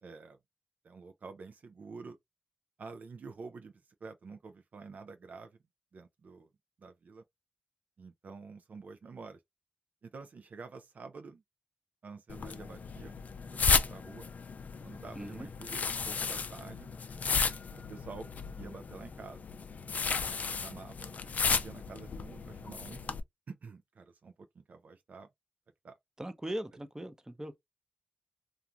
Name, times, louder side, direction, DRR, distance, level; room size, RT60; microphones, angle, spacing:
voice 1, 0.0-0.4 0.8-2.2 2.8-5.6 5.9-6.5 6.8-7.2 8.0-9.4 10.0-11.4 12.0-13.2 13.7-14.3 14.8-16.9 17.9-18.3 18.6-19.4 20.2-21.1 21.6-23.0 23.5-25.3 25.8-25.9, right 4 dB, 70° right, 0.4 m, -48 dB
sound 1, 12.3-23.2, left 5 dB, 65° left, 0.3 m, -34 dB
voice 2, 15.1-15.5 26.2-27.6, right 1 dB, 20° right, 0.7 m, -39 dB
2.4 x 2.4 x 2.8 m
cardioid pair, 40°, 3 cm